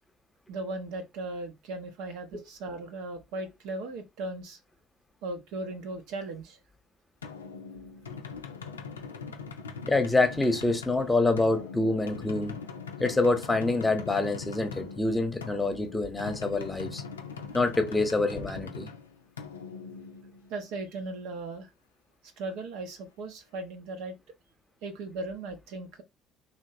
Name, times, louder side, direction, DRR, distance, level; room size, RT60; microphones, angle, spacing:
voice 1, 0.5-4.6 5.2-6.6 17.3-17.6 20.5-21.7 22.4-24.2 24.8-26.0, right 2 dB, 70° right, 0.7 m, -37 dB
sound 1, 7.2-20.8, left 5 dB, 90° left, 0.4 m, -41 dB
voice 2, 9.9-12.6 13.0-17.0 17.5-18.9, left 2 dB, 15° left, 0.9 m, -26 dB
3.0 x 2.8 x 2.7 m
hypercardioid pair, 60°, 0 cm